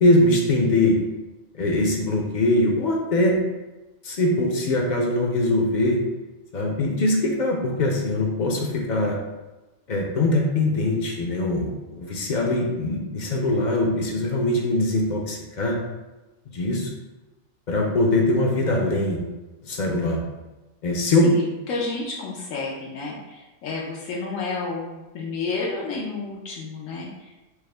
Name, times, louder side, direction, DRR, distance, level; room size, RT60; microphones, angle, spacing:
voice 1, 0.0-1.0 1.5-3.4 4.0-6.0 6.5-9.2 9.9-15.8 16.5-16.9 17.7-19.2 19.6-20.2 20.8-21.3, left 1 dB, 55° left, 0 dB, 0.5 m, -22 dB
voice 2, 21.2-27.3, left 3 dB, 90° left, -4 dB, 1.0 m, -31 dB
4.6 x 2.0 x 3.2 m, 1.1 s
omnidirectional pair, 1.3 m